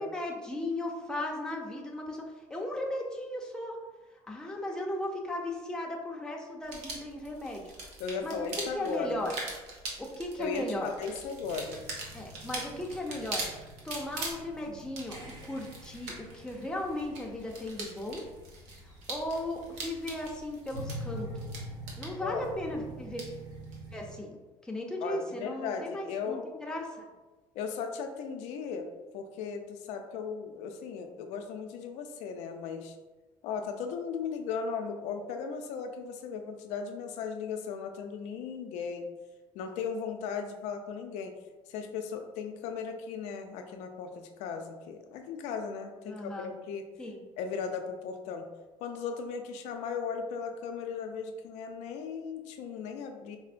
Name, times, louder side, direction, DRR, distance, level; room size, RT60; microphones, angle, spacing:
voice 1, 0.0-3.8 4.3-7.6 8.2-9.3 10.0-10.9 12.1-13.5 13.8-18.2 18.8-21.3 22.0-23.2 23.9-27.1 46.1-46.5 47.0-47.2, left 1 dB, 5° left, -1 dB, 0.5 m, -36 dB
sound 1, 6.6-23.8, right 3 dB, 85° right, 0.7 m, -43 dB
voice 2, 8.0-9.2 10.4-11.8 22.2-22.5 25.0-26.4 27.5-28.9 29.1-33.0 33.4-39.1 39.5-41.3 41.7-46.8 47.4-48.5 48.8-53.4, left 6 dB, 80° left, 5 dB, 0.4 m, -37 dB
sound 2, 11.4-24.2, right 1 dB, 35° right, 0.9 m, -46 dB
4.3 x 2.0 x 2.5 m, 1.2 s
cardioid pair, 105°, 12 cm